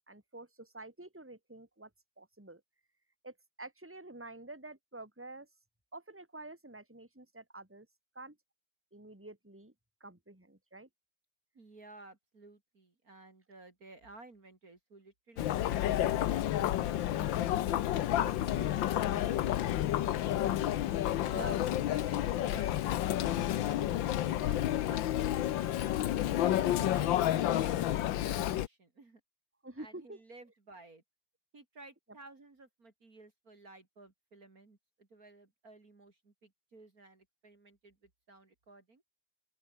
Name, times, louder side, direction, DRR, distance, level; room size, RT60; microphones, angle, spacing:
voice 1, 0.1-1.9 2.2-2.6 3.2-5.5 5.9-7.9 8.2-8.4 8.9-9.7 10.0-10.9 18.1-18.3 21.3-21.6 22.4-22.6 29.6-30.2, right 2 dB, 5° right, 3.7 m, -48 dB
voice 2, 11.5-17.4 18.1-18.7 19.1-20.6 21.3-22.8 23.2-26.0 26.4-27.9 28.2-29.2 29.8-31.0 31.5-39.0, right 2 dB, 45° right, 3.7 m, -55 dB
Chatter, 15.4-28.7, left 12 dB, 75° left, 1.6 m, -30 dB
open air
omnidirectional pair, 2.2 m